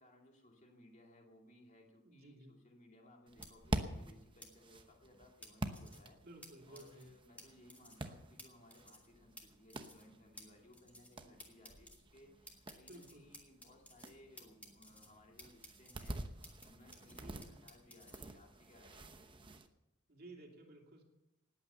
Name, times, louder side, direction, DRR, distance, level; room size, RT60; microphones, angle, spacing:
voice 1, 0.0-6.2 6.7-16.2 16.6-19.3, left 1 dB, 35° left, 1 dB, 2.4 m, -62 dB
voice 2, 2.0-2.5 6.2-7.1 11.6-11.7 12.8-13.3 17.1-17.6 20.1-21.0, right 1 dB, 45° right, 2 dB, 2.7 m, -56 dB
sound 1, 3.3-19.7, right 1 dB, 20° right, 0.9 m, -48 dB
sound 2, 3.4-3.5 4.4-4.5 5.4-6.0 6.4-6.5 6.7-7.0 7.4-7.5 7.7-8.0 8.4-8.5 8.7-9.1 9.4-9.5 9.7-10.0 10.4-10.5 10.7-11.1 11.4-12.0 12.5-14.1 14.4-15.1 15.4-16.7 16.9-18.2, left 1 dB, 5° left, 2.0 m, -55 dB
19.5 x 8.8 x 6.9 m, 0.94 s
head